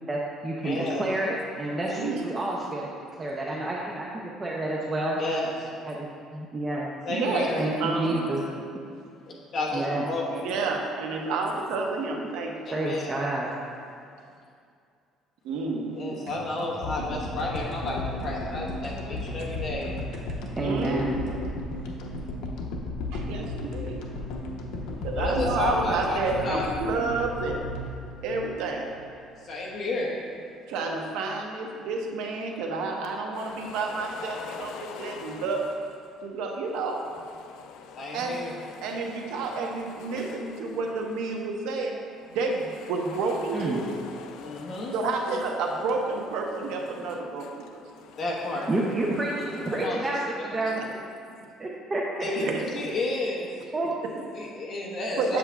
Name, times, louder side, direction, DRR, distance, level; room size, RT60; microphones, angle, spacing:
voice 1, 0.1-2.9 3.2-5.2 5.8-6.9 7.6-8.4 9.7-10.0 12.7-13.5 20.6-21.2 43.5-43.8 48.7-51.1 51.6-52.5 53.7-54.2, right 2 dB, 15° right, -3 dB, 0.4 m, -29 dB
voice 2, 0.6-1.0 5.2-5.7 7.0-7.6 9.3-10.5 12.6-13.2 15.9-19.9 25.1-26.7 29.2-30.1 37.9-38.5 44.4-44.9 48.2-48.7 49.7-50.0 50.6-50.7 52.2-53.5 54.3-55.4, left 2 dB, 35° left, -4 dB, 1.1 m, -31 dB
voice 3, 1.8-2.2 7.1-7.5 7.8-8.3 10.4-12.9 15.4-16.2 19.4-19.5 20.6-21.4 23.1-24.0 25.0-27.6 28.2-28.9 30.7-35.7 36.2-37.1 38.1-38.4 38.8-41.9 42.3-43.8 44.9-47.8 50.8-50.9 51.3-51.4 52.4-52.9 54.0-54.1 55.2-55.4, right 3 dB, 80° right, 1 dB, 0.7 m, -30 dB
sound 1, 16.3-21.4, right 2 dB, 50° right, 0.8 m, -46 dB
sound 2, 16.8-29.2, left 2 dB, 85° left, 0.7 m, -34 dB
sound 3, 33.3-36.1 36.7-41.6 42.2-49.9, left 7 dB, 65° left, 0.3 m, -45 dB
7.6 x 7.1 x 2.3 m, 2.3 s
cardioid pair, 175°, 0 cm